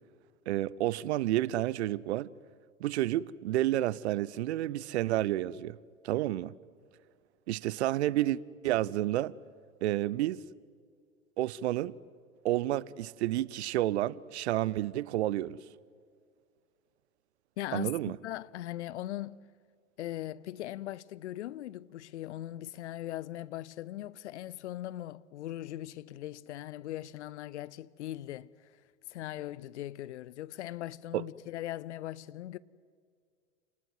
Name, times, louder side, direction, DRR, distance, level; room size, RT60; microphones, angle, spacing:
voice 1, 0.5-2.3 2.8-5.8 6.0-6.5 7.5-8.4 8.6-9.3 9.8-10.4 11.4-11.9 12.4-15.6 17.7-18.2 31.1-31.2, right 14 dB, 55° right, 0.8 m, -30 dB
voice 2, 17.6-19.4 20.0-28.5 29.1-32.6, left 14 dB, 60° left, 0.8 m, -40 dB
28.5 x 19.5 x 9.5 m
figure-of-eight pair, 90°, 40 cm